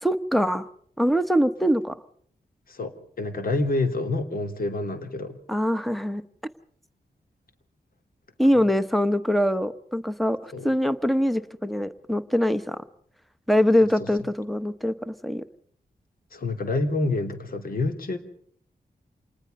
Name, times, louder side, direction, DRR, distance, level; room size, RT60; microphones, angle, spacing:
voice 1, 0.0-0.7 1.0-2.0 5.5-6.2 8.4-12.8 13.5-15.4, equal, ahead, 12 dB, 1.1 m, -23 dB
voice 2, 2.7-5.4 10.5-10.7 14.0-14.1 16.3-18.2, left 2 dB, 65° left, 7 dB, 3.1 m, -27 dB
27.0 x 20.0 x 5.5 m, 0.63 s
wide cardioid pair, 120°, 16 cm